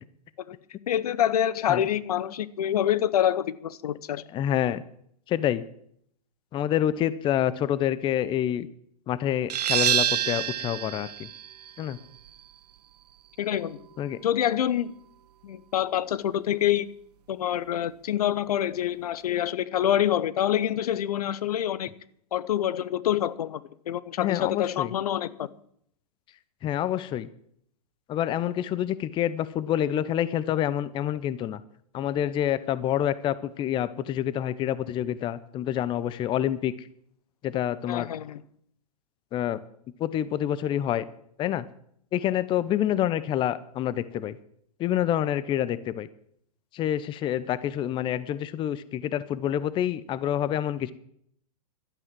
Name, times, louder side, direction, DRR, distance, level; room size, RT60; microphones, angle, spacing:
voice 1, 0.9-4.2 13.4-13.8 14.2-14.9 15.4-16.9 17.3-21.9 22.3-25.5 37.9-38.4, left 11 dB, 70° left, 0.9 m, -26 dB
voice 2, 4.3-4.8 5.3-5.6 6.5-8.7 9.1-11.3 11.8-12.0 14.0-14.2 24.2-24.9 26.6-27.3 28.1-31.6 31.9-36.7 37.4-38.1 39.3-39.6 40.0-41.0 41.4-41.6 42.1-44.4 44.8-46.1 46.7-50.9, left 11 dB, 25° left, 0.8 m, -27 dB
sound 1, 9.5-14.9, right 10 dB, 75° right, 0.7 m, -29 dB
12.0 x 11.0 x 7.5 m
hypercardioid pair, 125°, 21 cm